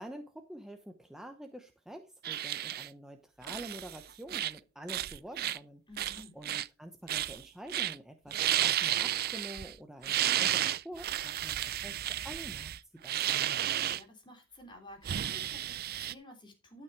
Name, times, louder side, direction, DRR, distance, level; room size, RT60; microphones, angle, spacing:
voice 1, 0.0-5.8 6.3-11.6 11.8-12.7 13.0-13.2, right 1 dB, ahead, 5 dB, 0.9 m, -47 dB
sound 1, 2.2-2.9 3.4-4.0 4.3-4.6 4.9-5.6 6.0-6.7 7.1-7.4 7.7-7.9 8.3-9.7 10.0-14.0 15.0-16.1, right 12 dB, 45° right, 0.4 m, -32 dB
voice 2, 5.9-6.3 13.5-16.8, left 1 dB, 20° left, 2 dB, 3.3 m, -52 dB
12.0 x 5.9 x 4.6 m, 0.28 s
head